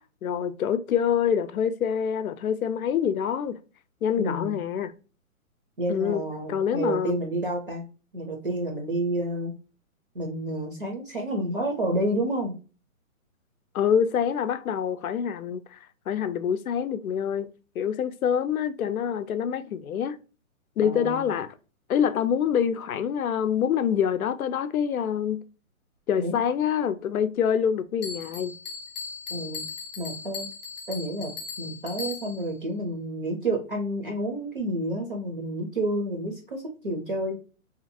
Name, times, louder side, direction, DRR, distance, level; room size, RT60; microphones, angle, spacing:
voice 1, 0.2-3.6 4.0-4.9 5.9-6.2 6.5-7.2 13.7-15.8 16.1-17.5 17.8-20.2 20.8-21.5 21.9-25.4 26.1-28.5, left 8 dB, 85° left, 0.6 m, -26 dB
voice 2, 4.2-4.5 5.8-7.8 8.1-9.5 10.1-12.5 20.8-21.3 26.2-26.3 29.3-29.6 30.0-30.5 30.9-31.3 31.6-37.3, right 1 dB, 40° right, 0.5 m, -29 dB
Bell, 28.0-32.5, left 5 dB, 30° left, 0.7 m, -38 dB
2.7 x 2.5 x 2.5 m
hypercardioid pair, 175°, 42 cm